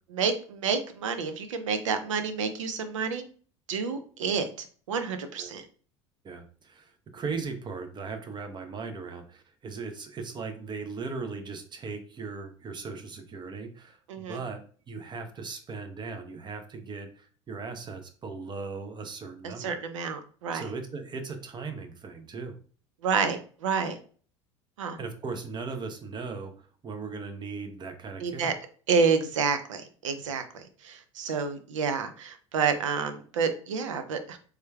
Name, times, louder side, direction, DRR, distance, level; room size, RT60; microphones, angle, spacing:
voice 1, 0.1-3.2 3.7-5.6 14.1-14.4 19.4-20.6 23.0-24.0 24.8-25.0 28.2-28.5 28.9-34.4, right 5 dB, 80° right, 9 dB, 0.5 m, -29 dB
voice 2, 6.2-19.8 20.5-22.5 25.0-28.6, right 4 dB, 30° right, 6 dB, 0.7 m, -38 dB
3.3 x 3.1 x 2.2 m, 0.43 s
hypercardioid pair, 75°, 16 cm